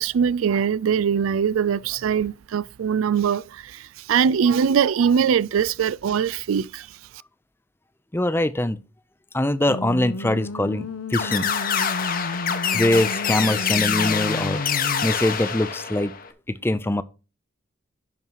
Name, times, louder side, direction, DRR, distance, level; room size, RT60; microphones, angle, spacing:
voice 1, 0.0-6.9, right 7 dB, 85° right, 0.4 m, -22 dB
voice 2, 8.1-8.8 9.3-11.5 12.7-14.6 15.0-16.1 16.5-17.0, left 1 dB, 10° left, 0.5 m, -23 dB
sound 1, 9.7-15.1, left 2 dB, 80° left, 0.8 m, -32 dB
sound 2, 11.1-16.3, left 7 dB, 45° left, 1.0 m, -26 dB
11.0 x 5.5 x 4.6 m
head